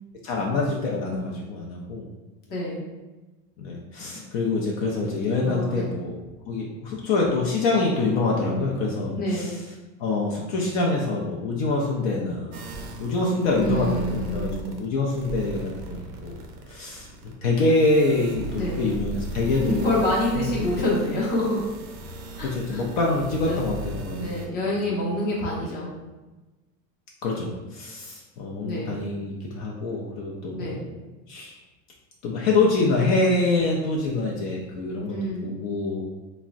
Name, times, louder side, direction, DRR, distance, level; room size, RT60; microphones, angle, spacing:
voice 1, 0.2-2.1 3.6-6.2 6.5-9.6 10.0-12.7 13.0-16.4 16.7-19.9 20.4-20.7 22.4-24.4 24.8-25.0 27.2-30.8 31.3-31.5 32.2-35.1 35.4-36.0, left 3 dB, 60° left, -2 dB, 0.5 m, -25 dB
voice 2, 2.5-2.8 5.1-6.0 9.2-9.6 13.6-14.8 18.6-18.8 19.6-21.7 22.4-22.8 23.5-23.7 24.2-25.9 28.6-29.0 30.6-30.9 35.1-35.6, left 1 dB, 25° left, -5 dB, 0.7 m, -27 dB
sound 1, 12.5-14.9 15.1-24.5, right 1 dB, 45° right, 0.4 m, -36 dB
3.5 x 2.1 x 2.4 m, 1.1 s
cardioid pair, 160°, 38 cm